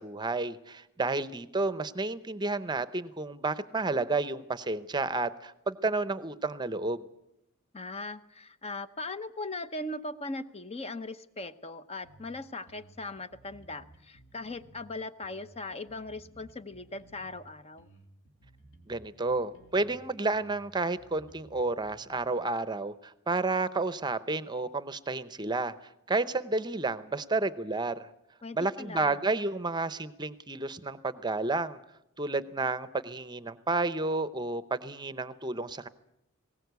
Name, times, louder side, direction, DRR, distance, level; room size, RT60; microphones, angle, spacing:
voice 1, 0.0-7.0 18.9-25.7 26.1-28.1 28.5-31.8 32.2-35.9, right 3 dB, 20° right, 14 dB, 0.8 m, -31 dB
voice 2, 7.7-17.9 28.4-29.2, left 2 dB, 30° left, 12 dB, 0.8 m, -39 dB
sound 1, 12.0-12.3 12.7-14.9 15.2-17.4 17.8-20.0 20.3-22.2, right 2 dB, 60° left, 3.0 m, -57 dB
20.5 x 18.0 x 8.1 m, 0.84 s
head